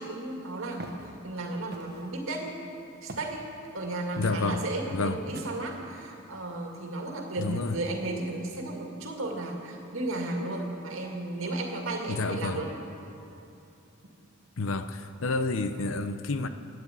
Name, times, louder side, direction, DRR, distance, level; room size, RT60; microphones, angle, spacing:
voice 1, 0.0-2.6 3.0-12.7, right 2 dB, 75° right, 1 dB, 2.1 m, -34 dB
Walk footsteps, 0.8-1.1 1.7-2.1 3.1-3.4 4.2-4.5 5.3-5.8, right 2 dB, 50° right, 1.1 m, -42 dB
voice 2, 4.2-4.6 4.9-5.2 7.4-7.8 12.1-12.6 14.6-16.5, left 3 dB, 75° left, 10 dB, 0.7 m, -29 dB
12.5 x 9.7 x 8.4 m, 2.8 s
head